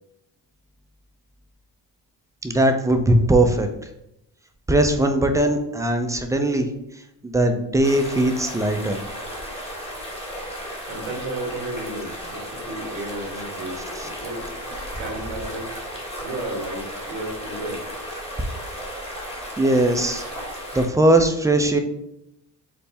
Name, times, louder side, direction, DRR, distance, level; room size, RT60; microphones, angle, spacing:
voice 1, 2.4-3.7 4.7-6.7 7.2-9.0 14.0-14.1 19.6-20.2 20.7-21.8, right 1 dB, 10° right, 5 dB, 0.3 m, -19 dB
sound 1, 7.8-20.9, equal, 15° left, 1.2 m, -34 dB
voice 2, 10.9-13.8 14.0-14.4 15.0-15.7 16.2-17.8, right 2 dB, 90° right, 1 dB, 1.1 m, -33 dB
4.3 x 2.1 x 3.3 m, 0.82 s
cardioid pair, 70°, 44 cm